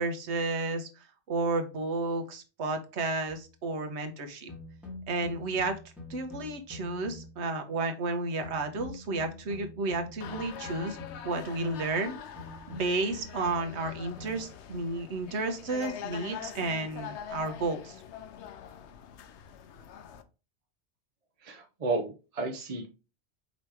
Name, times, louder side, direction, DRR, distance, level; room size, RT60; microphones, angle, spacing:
voice 1, 0.0-4.5 5.1-5.8 6.1-11.0 11.2-12.2 12.7-18.0, right 3 dB, 80° right, 6 dB, 1.2 m, -32 dB
sound 1, 3.3-3.6 4.5-7.5 8.4-11.4 12.4-14.5, left 2 dB, ahead, 1.3 m, -46 dB
sound 2, 10.2-20.2, left 8 dB, 80° left, 0.9 m, -44 dB
voice 2, 21.4-22.9, right 3 dB, 40° right, 3 dB, 0.7 m, -32 dB
5.2 x 3.0 x 3.3 m, 0.31 s
omnidirectional pair, 1.1 m